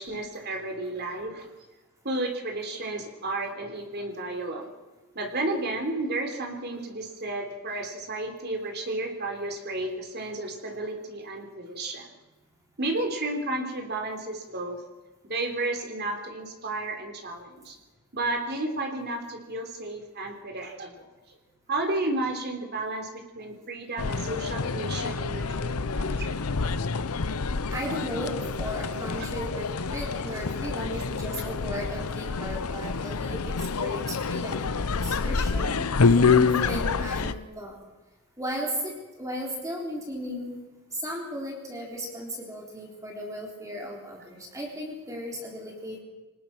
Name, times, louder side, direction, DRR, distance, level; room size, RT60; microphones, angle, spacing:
voice 1, 0.0-1.5 2.0-4.7 5.2-12.1 12.8-14.8 15.3-17.8 18.1-21.4 21.7-26.4 30.9-31.0, right 2 dB, 45° right, 3 dB, 3.7 m, -32 dB
sound 1, 24.0-37.3, left 4 dB, 80° left, 0.8 m, -27 dB
voice 2, 27.7-37.8 38.4-38.9 39.2-40.6 40.9-46.0, equal, 15° right, -1 dB, 3.8 m, -36 dB
25.5 x 19.5 x 6.0 m, 1.2 s
head